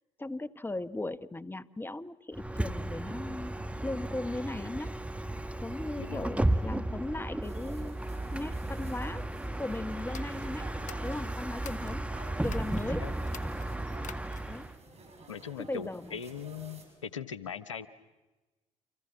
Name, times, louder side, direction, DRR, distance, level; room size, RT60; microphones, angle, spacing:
voice 1, 0.2-3.6 3.8-4.9 5.6-8.0 8.3-10.7 11.0-12.1 12.4-13.0 14.5-14.7 15.6-16.2, left 2 dB, 15° left, 14 dB, 1.4 m, -37 dB
Bus, 2.3-14.8, right 1 dB, 10° right, 1.6 m, -34 dB
voice 2, 6.0-6.3 13.0-13.1 15.3-17.9, left 7 dB, 85° left, 15 dB, 1.0 m, -40 dB
sound 1, 7.4-16.9, right 3 dB, 45° right, 7.9 m, -51 dB
sound 2, 10.0-12.0 12.4-12.8 13.2-14.6, left 8 dB, 55° left, 2.1 m, -49 dB
30.0 x 26.5 x 7.2 m, 1.1 s
figure-of-eight pair, 50°, 16 cm